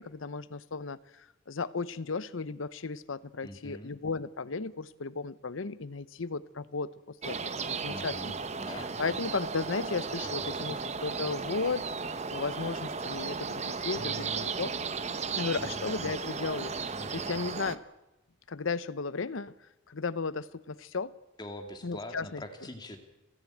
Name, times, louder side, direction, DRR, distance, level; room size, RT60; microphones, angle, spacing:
voice 1, 0.0-8.3 9.0-11.8 12.3-14.7 15.3-17.8 18.5-19.5 19.9-21.1 21.8-22.4, left 4 dB, 85° left, 16 dB, 0.8 m, -35 dB
voice 2, 3.4-3.9 7.9-9.0 10.2-10.8 13.9-14.5 15.6-16.1 16.9-17.4 21.4-23.0, left 1 dB, 20° left, 4 dB, 2.5 m, -44 dB
sound 1, 7.2-17.8, right 5 dB, 35° right, 0.9 m, -35 dB
29.0 x 10.5 x 9.1 m, 0.99 s
head